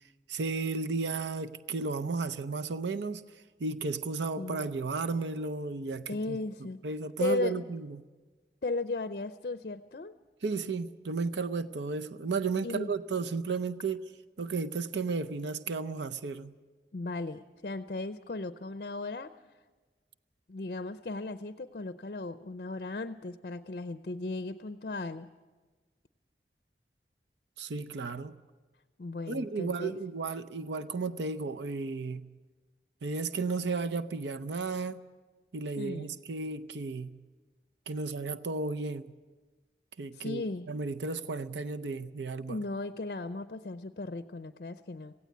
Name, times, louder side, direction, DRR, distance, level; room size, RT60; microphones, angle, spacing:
voice 1, 0.3-3.2 3.6-6.4 6.8-8.1 10.4-14.0 14.4-16.5 27.6-28.4 29.3-32.3 33.0-35.0 35.5-37.1 37.9-39.1 40.0-40.4 40.7-42.6, right 4 dB, 85° right, 10 dB, 0.6 m, -33 dB
voice 2, 4.4-4.7 6.1-6.8 7.2-7.6 8.6-10.1 12.6-12.9 16.9-19.3 20.5-25.3 29.0-29.9 35.8-36.2 40.1-40.7 42.5-45.1, left 3 dB, 55° left, 11 dB, 0.5 m, -36 dB
17.5 x 16.0 x 9.3 m, 1.3 s
head